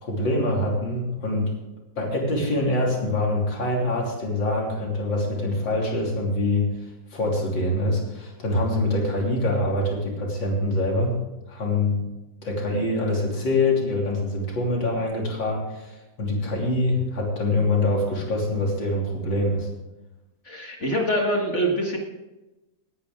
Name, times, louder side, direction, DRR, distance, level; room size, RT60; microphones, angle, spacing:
voice 1, 0.0-1.5 2.0-6.7 7.1-11.2 11.5-12.0 12.4-19.7, left 1 dB, 75° left, -2 dB, 3.8 m, -24 dB
voice 2, 20.5-22.0, equal, 40° left, 0 dB, 2.0 m, -24 dB
18.5 x 9.9 x 3.8 m, 1.0 s
omnidirectional pair, 2.0 m